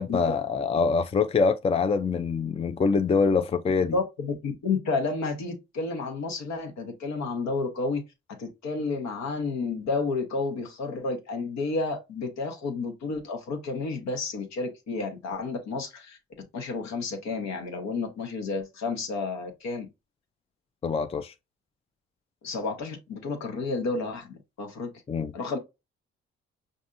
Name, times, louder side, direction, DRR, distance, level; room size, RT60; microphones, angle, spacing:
voice 1, 0.0-4.0 20.8-21.3 25.1-25.3, left 4 dB, 20° left, 0.4 m, -24 dB
voice 2, 3.9-8.0 8.4-16.2 16.5-19.9 22.4-24.9 25.3-25.6, left 3 dB, 65° left, 1.2 m, -31 dB
5.3 x 2.6 x 2.5 m
hypercardioid pair, 50°, 29 cm